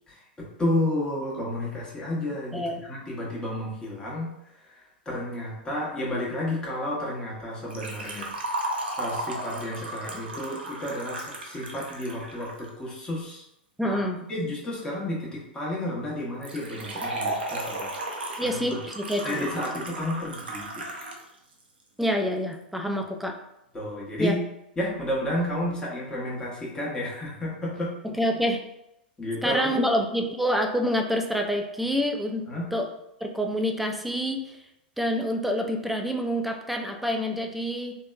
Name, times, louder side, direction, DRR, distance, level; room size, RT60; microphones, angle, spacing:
voice 1, 0.1-13.4 13.8-14.0 14.3-17.9 18.3-18.8 19.2-21.1 23.7-24.4 24.8-28.2 29.2-29.9 32.5-32.7, left 1 dB, 15° left, -5 dB, 0.9 m, -31 dB
voice 2, 2.5-2.8 13.8-14.2 18.4-19.5 22.0-23.4 24.2-24.3 28.2-28.6 29.4-32.4 32.7-32.9 33.2-34.6 35.0-37.9, equal, ahead, 4 dB, 0.3 m, -27 dB
Liquid, 7.7-12.7 16.4-21.2 21.5-21.6 22.5-22.6, right 2 dB, 85° right, 0.5 m, -34 dB
2.8 x 2.1 x 2.3 m, 0.85 s
hypercardioid pair, 105°, 5 cm